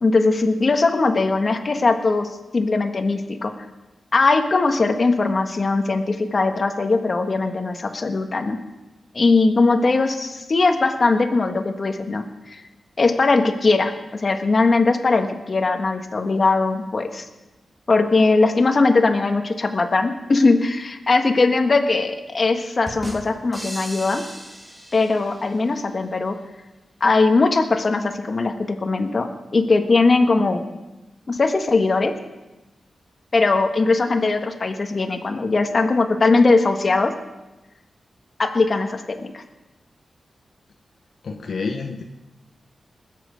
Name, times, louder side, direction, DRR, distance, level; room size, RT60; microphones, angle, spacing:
voice 1, 0.0-3.6 4.1-8.6 9.1-12.6 13.0-17.2 17.9-24.2 24.9-26.4 27.0-30.6 31.3-32.1 33.3-37.1 38.4-39.4, left 3 dB, 45° left, 5 dB, 1.4 m, -20 dB
sound 1, 22.9-25.7, equal, 10° right, 2.1 m, -36 dB
voice 2, 41.2-42.0, left 4 dB, 70° left, 3 dB, 1.0 m, -28 dB
20.5 x 7.6 x 5.1 m, 1.0 s
cardioid pair, 80°, 0 cm